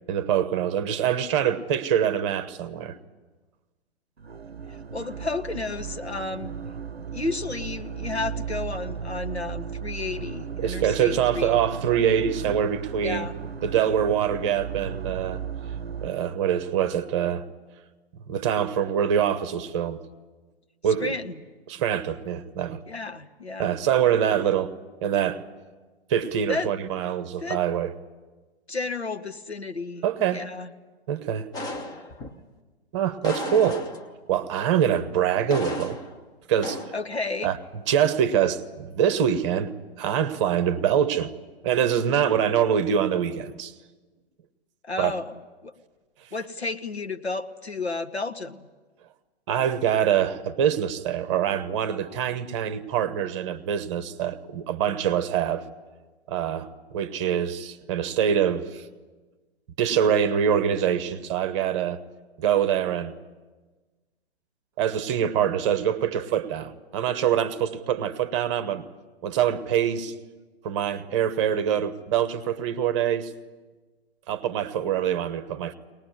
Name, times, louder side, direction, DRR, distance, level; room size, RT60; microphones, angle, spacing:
voice 1, 0.1-3.0 10.6-13.3 13.6-15.4 16.0-17.5 18.3-20.0 20.8-21.1 21.7-22.8 23.6-24.7 25.0-25.4 26.1-27.9 30.0-30.4 31.1-31.5 32.9-33.8 34.3-36.0 36.5-36.8 37.4-37.6 37.9-39.7 40.0-41.3 41.6-43.7 45.0-45.1 49.5-55.6 56.3-58.9 59.8-62.0 62.4-63.1 64.8-68.8 69.2-70.1 70.6-73.3 74.3-75.7, right 9 dB, 30° right, 12 dB, 1.1 m, -24 dB
sound 1, 4.2-16.1, right 7 dB, 75° right, 0.7 m, -35 dB
voice 2, 4.7-6.5 7.1-11.6 13.0-13.4 21.0-21.4 22.9-23.8 26.5-26.7 27.4-27.6 28.7-30.7 33.5-33.8 36.9-37.5 44.8-45.3 45.6-45.7 46.3-48.7, left 3 dB, 85° left, 8 dB, 1.4 m, -32 dB
sound 2, 31.5-32.4 33.2-34.3 35.5-36.2 36.6-37.0, left 2 dB, 10° left, 1.1 m, -34 dB
22.5 x 19.5 x 9.6 m, 1.3 s
figure-of-eight pair, 125°, 32 cm